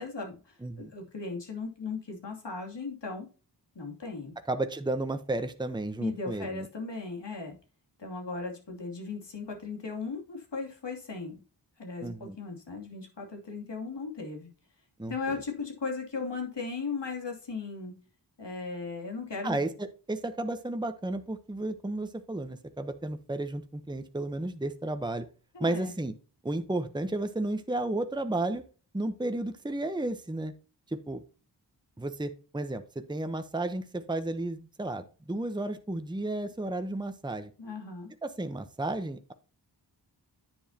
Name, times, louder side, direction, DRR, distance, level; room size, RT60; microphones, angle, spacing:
voice 1, 0.0-3.3 3.7-4.3 6.0-7.6 8.0-11.4 11.8-14.5 15.1-17.9 18.4-19.6 25.5-25.9 37.6-38.1, left 4 dB, 80° left, 1 dB, 2.9 m, -37 dB
voice 2, 0.6-0.9 4.5-6.7 12.0-12.4 15.0-15.1 19.4-25.3 25.6-26.1 26.4-28.6 28.9-30.5 30.9-31.2 32.0-37.5 38.2-39.3, right 2 dB, 10° right, 9 dB, 0.9 m, -33 dB
10.5 x 7.2 x 2.9 m, 0.35 s
wide cardioid pair, 60°, 42 cm